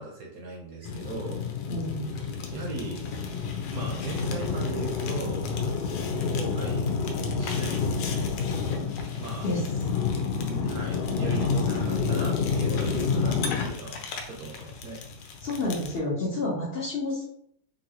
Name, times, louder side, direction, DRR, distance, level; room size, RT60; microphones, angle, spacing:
voice 1, 0.0-1.4 2.5-3.0 3.7-5.5 6.2-6.8 7.4-7.8 9.2-9.5 10.6-13.4 13.6-14.0 14.2-15.0, right 3 dB, 65° right, -2 dB, 0.9 m, -38 dB
Fire, 0.8-16.0, left 5 dB, 90° left, 1.3 m, -29 dB
voice 2, 1.7-2.0 9.4-9.6 10.0-10.8 15.4-17.2, left 2 dB, 55° left, -4 dB, 0.6 m, -31 dB
3.1 x 2.6 x 2.7 m, 0.67 s
omnidirectional pair, 1.9 m